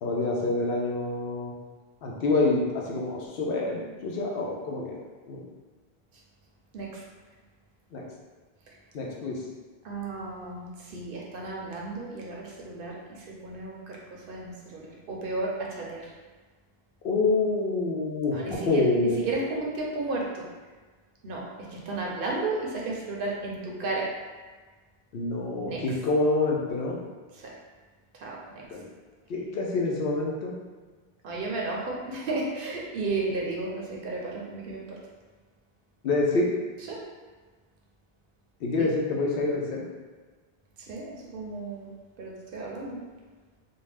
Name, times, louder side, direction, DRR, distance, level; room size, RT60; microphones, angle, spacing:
voice 1, 0.0-1.5 2.0-5.0 5.3-5.4 7.9-8.0 8.9-9.4 17.0-19.2 25.1-27.0 28.7-28.8 29.3-30.5 36.0-36.5 38.6-39.8, left 3 dB, 70° left, -2 dB, 0.8 m, -27 dB
voice 2, 9.8-16.1 18.3-20.5 21.2-24.1 25.5-25.8 27.3-27.5 28.1-28.6 31.2-35.0 36.9-37.0 38.8-38.9 40.8-41.9 42.2-43.0, right 2 dB, 65° right, -2 dB, 0.7 m, -33 dB
2.6 x 2.1 x 3.2 m, 1.4 s
omnidirectional pair, 1.0 m